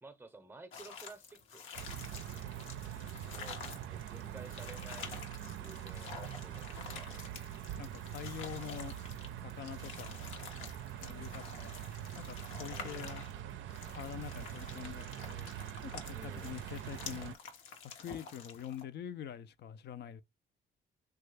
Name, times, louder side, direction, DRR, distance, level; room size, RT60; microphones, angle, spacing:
voice 1, 0.0-1.7 3.3-7.1 12.7-13.2 16.1-16.5, right 3 dB, 10° right, 0.7 m, -54 dB
sound 1, 0.7-18.8, left 5 dB, 80° left, 0.9 m, -49 dB
sound 2, 1.7-17.3, right 11 dB, 75° right, 0.4 m, -44 dB
voice 2, 7.8-8.9 9.4-10.2 11.0-11.7 12.2-13.2 13.9-15.5 15.8-17.3 18.0-20.2, left 9 dB, 60° left, 0.4 m, -45 dB
3.1 x 2.3 x 3.2 m
cardioid pair, 90°, 20 cm